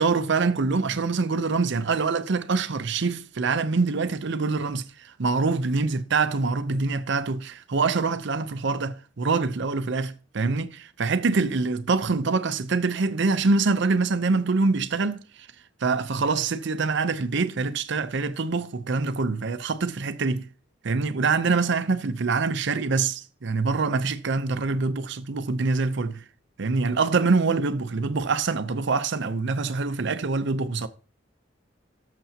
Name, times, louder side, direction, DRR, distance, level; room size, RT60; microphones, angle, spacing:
voice 1, 0.0-15.5 15.8-20.5 20.8-26.2 26.6-30.9, right 4 dB, 65° right, 0.7 m, -25 dB
19.0 x 6.8 x 2.8 m
head